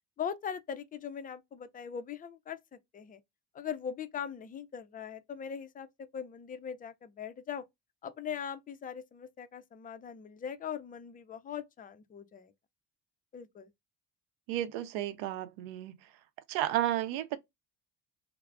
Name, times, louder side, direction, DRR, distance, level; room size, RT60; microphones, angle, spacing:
voice 1, 0.2-2.6 2.9-3.2 3.5-7.6 8.0-12.5 13.3-13.7, left 8 dB, 20° left, 0.3 m, -40 dB
voice 2, 14.5-15.9 16.5-17.4, right 13 dB, 75° right, 0.6 m, -32 dB
2.3 x 2.0 x 3.2 m
supercardioid pair, 70°, 46 cm